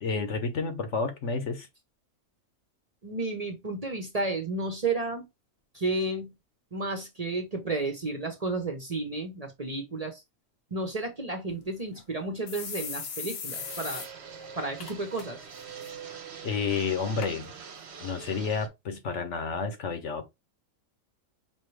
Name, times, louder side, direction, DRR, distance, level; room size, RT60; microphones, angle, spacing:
voice 1, 0.0-1.7 16.4-17.5 18.0-20.2, left 5 dB, 65° left, 1.2 m, -30 dB
voice 2, 3.0-5.3 5.7-6.3 6.7-10.2 10.7-14.0 14.6-15.4, right 2 dB, 30° right, 0.9 m, -32 dB
sound 1, 11.5-11.6 12.0-12.1 12.5-14.1 14.4-14.5 14.8-15.2 15.6-15.9 16.6-16.7 17.2-17.3 18.1-18.2, left 6 dB, 85° left, 1.4 m, -38 dB
Fixed-wing aircraft airplane, 13.5-18.7, right 6 dB, 55° right, 1.1 m, -44 dB
5.4 x 2.9 x 3.2 m
omnidirectional pair, 1.4 m